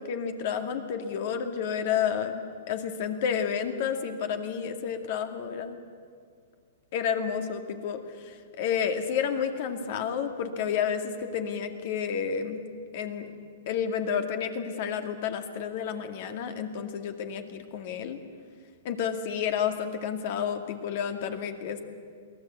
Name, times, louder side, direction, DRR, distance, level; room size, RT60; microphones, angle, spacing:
voice 1, 0.0-5.8 6.9-12.6 12.9-13.3 13.7-18.2 18.8-21.8, left 7 dB, 55° left, 7 dB, 2.1 m, -30 dB
23.0 x 17.0 x 8.2 m, 2.1 s
hypercardioid pair, 135°, 0 cm